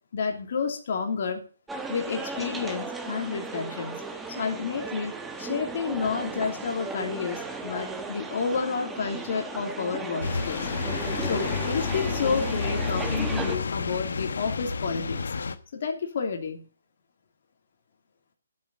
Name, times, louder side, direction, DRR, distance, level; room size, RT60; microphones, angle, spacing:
voice 1, 0.1-1.4 1.9-4.0 4.3-10.7 11.2-15.2 15.7-16.6, left 5 dB, 50° left, 3 dB, 2.9 m, -30 dB
sound 1, 1.7-13.6, right 3 dB, 5° right, 1.4 m, -36 dB
sound 2, 10.2-15.5, left 5 dB, 75° left, 1.3 m, -30 dB
12.5 x 8.2 x 7.6 m, 0.38 s
hypercardioid pair, 155°, 0 cm